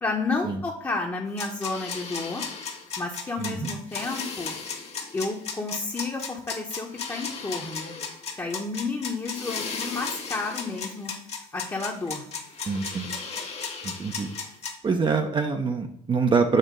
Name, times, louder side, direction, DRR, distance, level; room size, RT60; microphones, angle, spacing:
voice 1, 0.0-2.5 3.0-4.6 5.1-7.9 8.4-11.1 11.5-12.3, left 3 dB, 20° left, -1 dB, 1.0 m, -31 dB
sound 1, 1.4-14.7, left 5 dB, 40° left, 1.3 m, -35 dB
voice 2, 3.4-3.7 12.7-13.1 13.8-14.3 14.8-16.6, right 5 dB, 30° right, 5 dB, 0.7 m, -25 dB
6.6 x 2.9 x 5.1 m, 0.72 s
supercardioid pair, 80°, 16 cm